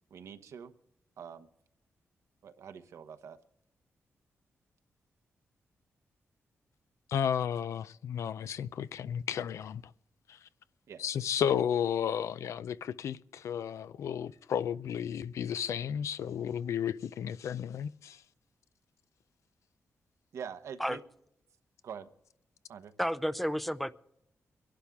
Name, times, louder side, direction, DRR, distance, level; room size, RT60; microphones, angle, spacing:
voice 1, 0.1-0.7 1.2-1.5 2.4-3.4 10.9-11.0 20.3-21.0 21.8-22.1 22.7-22.9, right 7 dB, 80° right, 1.0 m, -44 dB
voice 2, 7.1-9.9 10.3-10.5 11.0-18.2, left 8 dB, 90° left, 0.5 m, -33 dB
voice 3, 23.0-24.0, equal, ahead, 0.5 m, -31 dB
23.5 x 11.5 x 3.6 m
wide cardioid pair, 140°, 5 cm